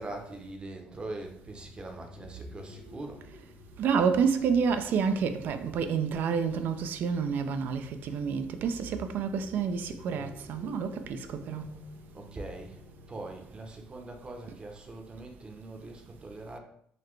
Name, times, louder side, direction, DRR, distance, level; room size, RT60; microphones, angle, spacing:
voice 1, 0.0-3.2 12.1-16.6, right 2 dB, 30° right, 0.7 m, -42 dB
sound 1, 1.4-13.6, left 1 dB, 85° left, 0.7 m, -51 dB
voice 2, 3.8-11.7, right 6 dB, 65° right, 0.3 m, -29 dB
3.9 x 2.2 x 3.1 m
cardioid pair, 95°, 4 cm